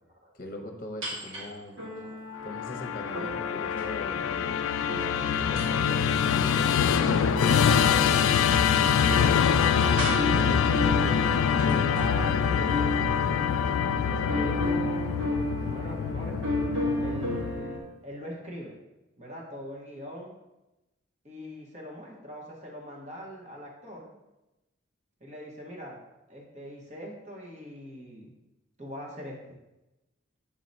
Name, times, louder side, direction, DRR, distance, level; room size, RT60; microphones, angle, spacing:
voice 1, 0.3-1.8 2.4-4.7 5.4-7.3, left 1 dB, 45° left, 2 dB, 0.9 m, -41 dB
sound 1, 1.0-1.5 1.8-17.8, left 1 dB, 70° right, 1.4 m, -34 dB
Musical instrument, 2.5-17.8, left 7 dB, 85° left, 0.3 m, -25 dB
voice 2, 9.5-11.2 11.5-15.1 15.6-16.4 17.0-18.8 19.2-20.4 21.2-24.1 25.2-26.0 26.3-28.3 28.8-29.6, equal, 35° right, -2 dB, 1.2 m, -41 dB
7.2 x 2.9 x 5.2 m, 0.99 s
head